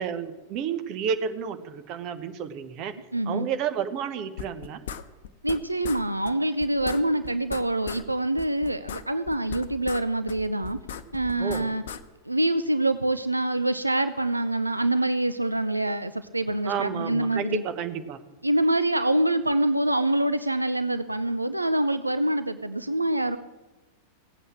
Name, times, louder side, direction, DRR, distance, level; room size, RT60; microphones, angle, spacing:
voice 1, 0.0-2.9 3.3-4.8 11.4-11.7 16.7-18.2, right 7 dB, 40° right, 9 dB, 1.2 m, -31 dB
voice 2, 3.1-3.5 5.4-10.8 11.1-11.8 12.3-17.6 18.4-23.4, right 1 dB, 85° right, 11 dB, 0.5 m, -25 dB
sound 1, 4.4-5.6 5.8-6.0 6.3-6.4 6.6-8.0 8.4-10.0 10.3-12.0, left 8 dB, 60° left, 0.8 m, -37 dB
17.0 x 8.4 x 7.5 m, 1.1 s
figure-of-eight pair, 90°, 0 cm